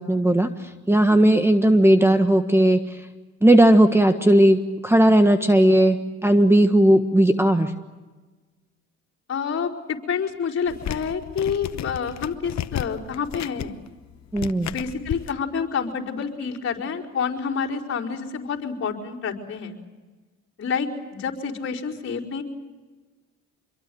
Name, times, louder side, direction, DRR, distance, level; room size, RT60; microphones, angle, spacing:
voice 1, 0.0-3.0 3.4-7.7 14.3-14.7, right 1 dB, 10° right, 7 dB, 1.4 m, -17 dB
voice 2, 9.3-13.7 14.6-19.8 20.6-22.4, left 6 dB, 45° left, -4 dB, 4.9 m, -28 dB
sound 1, 10.7-15.3, left 11 dB, 65° left, 1.0 m, -33 dB
26.5 x 23.0 x 7.9 m, 1.3 s
cardioid pair, 90°, 30 cm